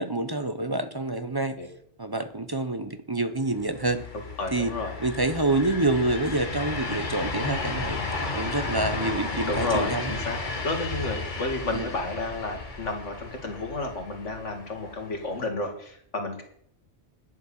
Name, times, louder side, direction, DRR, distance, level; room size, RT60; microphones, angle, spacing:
voice 1, 0.0-1.6 2.0-4.0 4.5-4.7 5.0-8.0 8.3-10.1 11.7-11.9, right 2 dB, 25° right, 10 dB, 0.6 m, -27 dB
sound 1, 3.5-15.5, left 3 dB, 45° left, 1.6 m, -33 dB
voice 2, 4.4-4.9 9.5-16.4, left 2 dB, 85° left, 4 dB, 2.5 m, -31 dB
10.5 x 7.9 x 7.1 m, 0.65 s
omnidirectional pair, 1.2 m